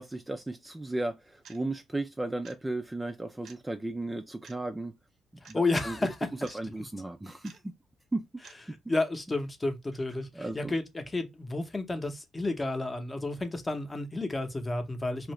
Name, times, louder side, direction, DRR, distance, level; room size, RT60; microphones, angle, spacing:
voice 1, 0.0-4.9 5.5-6.0 6.5-7.7 8.1-8.2 10.4-10.7, right 2 dB, 15° right, 0.4 m, -35 dB
sound 1, 1.4-1.6 2.4-2.6 3.4-3.6 4.4-4.6 5.4-5.6 6.4-6.6 7.4-7.6 8.4-8.6, right 6 dB, 70° right, 0.7 m, -51 dB
voice 2, 5.5-6.6 8.9-15.3, left 2 dB, 20° left, 0.8 m, -31 dB
2.8 x 2.5 x 3.0 m
cardioid pair, 90°, 0 cm